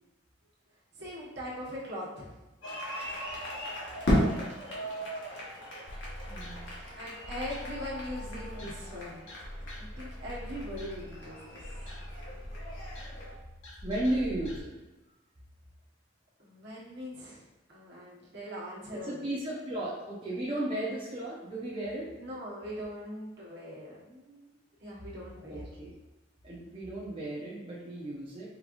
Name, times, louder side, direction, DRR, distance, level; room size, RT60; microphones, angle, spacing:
voice 1, 1.0-2.4 7.0-9.3 10.0-11.6 16.4-17.4 17.7-19.3 22.2-24.5 24.8-25.7, equal, 60° right, -5 dB, 1.3 m, -41 dB
sound 1, 2.6-13.4, equal, 70° left, 1.3 m, -36 dB
sound 2, 5.9-14.6, equal, 90° left, 1.1 m, -43 dB
voice 2, 6.3-6.7 13.8-14.7 19.0-22.1 25.5-25.9 26.4-28.5, right 1 dB, 25° right, -7 dB, 0.7 m, -34 dB
4.8 x 3.3 x 2.6 m, 1.1 s
head